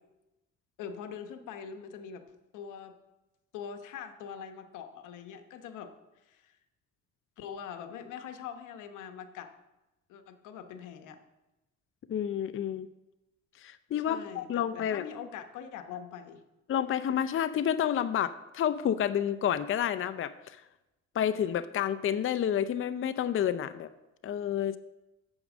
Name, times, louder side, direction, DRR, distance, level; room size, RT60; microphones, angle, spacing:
voice 1, 0.8-2.2 2.5-2.9 3.5-5.9 6.3-6.5 7.4-9.5 10.1-11.2 13.9-16.4, left 7 dB, 90° left, 7 dB, 1.0 m, -43 dB
voice 2, 12.1-12.9 13.6-15.0 16.7-20.6 21.1-23.9 24.2-24.8, left 9 dB, 45° left, 13 dB, 0.5 m, -29 dB
8.8 x 7.3 x 6.1 m, 0.99 s
cardioid pair, 90°, 30 cm